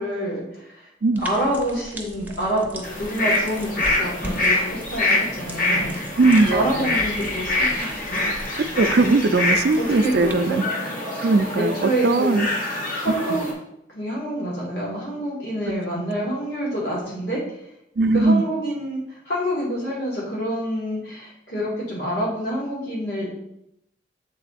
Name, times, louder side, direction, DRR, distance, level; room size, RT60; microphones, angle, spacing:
voice 1, 0.0-0.9 1.2-5.9 6.5-8.2 9.8-10.6 11.6-12.4 13.0-13.5 13.9-17.6 18.1-23.3, equal, 70° left, -5 dB, 2.2 m, -27 dB
sound 1, 1.1-10.3, right 1 dB, 10° right, 0.6 m, -40 dB
sound 2, 2.8-13.5, left 2 dB, 50° left, 1.4 m, -25 dB
voice 2, 6.2-7.0 8.8-10.6 11.2-12.5 13.3-13.4 18.0-18.4, right 3 dB, 60° right, 9 dB, 0.4 m, -19 dB
7.0 x 3.8 x 4.2 m, 0.80 s
head